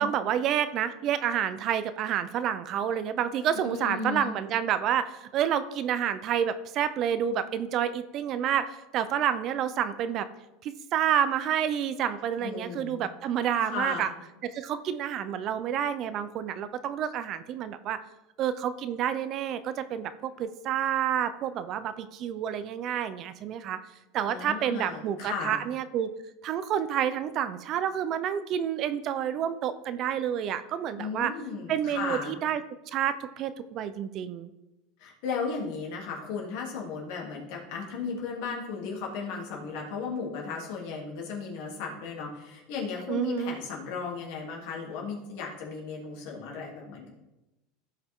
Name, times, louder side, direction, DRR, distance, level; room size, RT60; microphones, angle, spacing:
voice 1, 0.0-10.3 10.6-14.1 14.5-18.0 18.4-23.8 24.1-26.1 26.4-31.3 31.7-32.6 32.9-34.5 43.1-43.6, right 9 dB, 40° right, 12 dB, 0.6 m, -29 dB
voice 2, 3.5-4.3 12.4-13.0 13.6-14.1 24.3-25.6 31.0-32.3 35.0-47.1, left 5 dB, 65° left, -2 dB, 2.9 m, -35 dB
15.5 x 5.7 x 3.7 m, 0.98 s
supercardioid pair, 135°, 0 cm